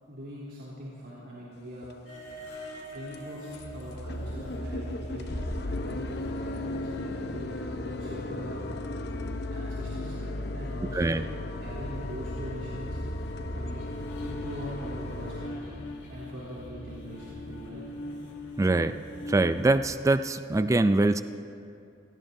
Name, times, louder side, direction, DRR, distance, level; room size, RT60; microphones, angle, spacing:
voice 1, 0.1-1.9 2.9-7.6 7.8-8.6 9.5-11.3 11.6-13.0 13.5-13.8 14.2-15.8 16.1-17.8, equal, 70° right, -8 dB, 3.4 m, -42 dB
sound 1, 1.8-1.9 2.4-2.8 3.1-3.2 3.5-3.7 3.9-15.5, left 2 dB, 55° left, 0.8 m, -36 dB
sound 2, 2.1-19.7, equal, 75° left, 4.5 m, -41 dB
voice 2, 18.6-19.0 19.3-21.2, right 2 dB, 15° right, 11 dB, 0.3 m, -23 dB
27.5 x 19.0 x 2.7 m, 2.6 s
head